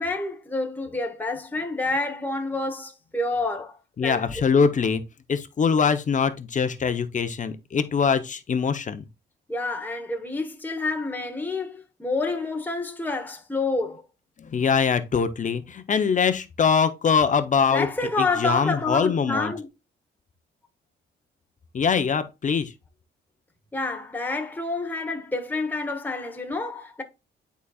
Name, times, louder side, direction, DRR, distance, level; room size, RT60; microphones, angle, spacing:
voice 1, 0.0-4.4 9.5-14.0 17.7-19.7 23.7-27.0, left 3 dB, 10° left, 1.1 m, -28 dB
voice 2, 4.0-5.0 5.3-9.0 14.4-19.5 21.7-22.7, left 6 dB, 40° left, 0.8 m, -23 dB
11.0 x 4.1 x 2.4 m
cardioid pair, 90°, 20 cm